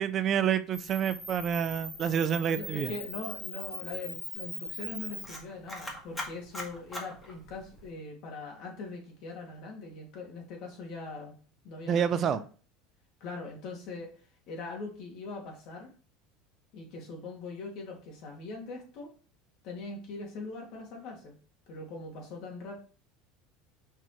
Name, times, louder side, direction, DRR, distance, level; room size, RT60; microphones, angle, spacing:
voice 1, 0.0-2.9 11.9-12.4, right 8 dB, 40° right, 12 dB, 0.5 m, -28 dB
Camera, 0.7-7.9, equal, 10° left, 1.8 m, -41 dB
voice 2, 2.5-11.4 11.6-12.4 13.2-14.1 14.5-15.9 16.7-19.1 19.6-21.3 21.7-22.8, left 3 dB, 60° left, 0 dB, 2.8 m, -41 dB
5.7 x 4.6 x 4.5 m, 0.39 s
supercardioid pair, 130°, 0 cm